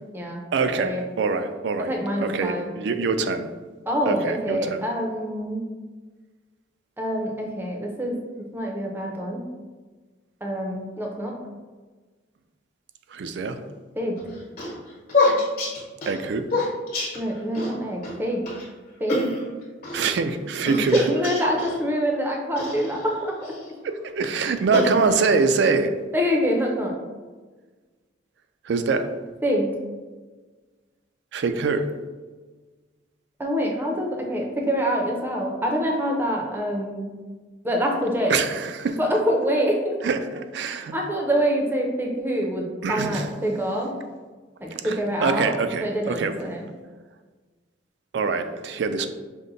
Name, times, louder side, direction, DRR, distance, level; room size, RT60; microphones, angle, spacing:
voice 1, 0.5-1.9 2.2-3.5 4.1-4.8 13.1-13.6 16.1-16.5 19.9-21.0 24.2-25.9 28.7-29.1 31.3-31.9 38.3-39.0 40.0-41.0 42.8-43.3 44.8-46.4 48.1-49.1, right 4 dB, 65° right, 9 dB, 0.3 m, -24 dB
voice 2, 1.9-2.7 3.9-5.6 7.0-9.4 10.4-11.4 14.0-14.2 17.1-18.4 19.0-19.3 20.7-23.4 26.1-26.9 29.4-29.7 33.4-37.1 37.6-38.4 39.0-40.0 40.9-43.9 44.6-46.6, equal, 10° right, 0 dB, 0.5 m, -25 dB
sound 1, 14.2-17.7 18.0-18.1 18.5-18.7 19.1-20.1 20.6-21.8 22.6-23.7 24.3-25.5, left 2 dB, 45° left, 1.1 m, -27 dB
5.3 x 2.1 x 3.8 m, 1.4 s
head